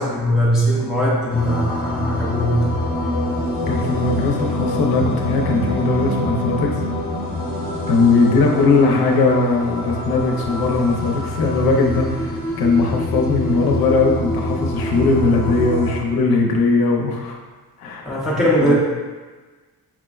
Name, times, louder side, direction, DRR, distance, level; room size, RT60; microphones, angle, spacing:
voice 1, 0.0-2.5 18.0-18.7, equal, ahead, -7 dB, 0.4 m, -20 dB
sound 1, 1.3-16.0, left 1 dB, 25° left, 0.8 m, -25 dB
voice 2, 3.7-6.7 7.9-17.4 17.8-18.1 18.4-18.7, left 3 dB, 65° left, 1 dB, 0.6 m, -19 dB
5.9 x 2.1 x 2.3 m, 1.3 s
cardioid pair, 175°, 39 cm